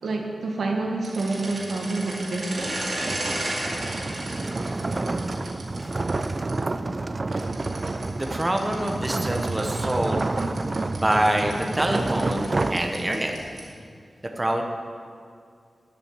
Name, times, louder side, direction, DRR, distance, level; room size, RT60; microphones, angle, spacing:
voice 1, 0.0-3.0, right 2 dB, 80° right, 1 dB, 1.5 m, -28 dB
sound 1, 1.0-6.5 7.3-13.8, right 1 dB, 55° right, 2.4 m, -35 dB
sound 2, 2.5-13.5, right 2 dB, 35° right, 0.4 m, -29 dB
voice 2, 8.2-10.2 10.9-13.3 14.4-14.6, right 1 dB, 20° right, 3 dB, 0.8 m, -25 dB
12.0 x 6.1 x 8.2 m, 2.2 s
wide cardioid pair, 120°, 0 cm